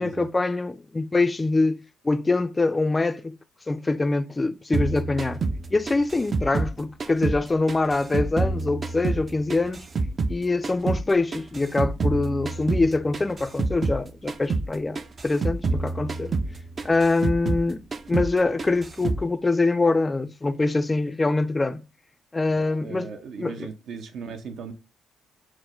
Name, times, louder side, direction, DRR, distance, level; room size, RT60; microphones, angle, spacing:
voice 1, 0.0-3.4 3.7-5.4 5.7-9.9 10.3-16.3 16.8-17.8 18.1-21.8 22.3-23.1 23.4-23.7, left 3 dB, 20° left, 0.4 m, -24 dB
sound 1, 4.7-7.4 7.7-10.4 10.6-14.0 14.3-14.7 14.9-17.7 17.9-18.3 18.6-19.2, right 3 dB, 40° right, 0.5 m, -27 dB
voice 2, 22.6-24.7, right 6 dB, 70° right, 0.8 m, -38 dB
4.6 x 2.0 x 3.7 m
cardioid pair, 90°, 0 cm